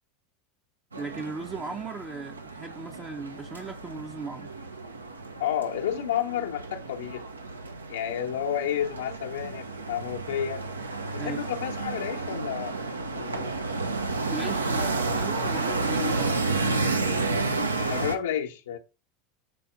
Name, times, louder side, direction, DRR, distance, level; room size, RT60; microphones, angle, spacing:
sound 1, 0.9-18.2, right 3 dB, 80° right, 0.7 m, -31 dB
voice 1, 1.0-4.5 11.2-11.4 14.2-16.5, right 3 dB, 20° right, 0.6 m, -37 dB
voice 2, 5.4-7.2 7.9-10.6 11.1-12.8 13.2-13.5 17.9-18.8, left 10 dB, 65° left, 0.7 m, -31 dB
7.6 x 4.2 x 3.8 m
figure-of-eight pair, 80°, 0 cm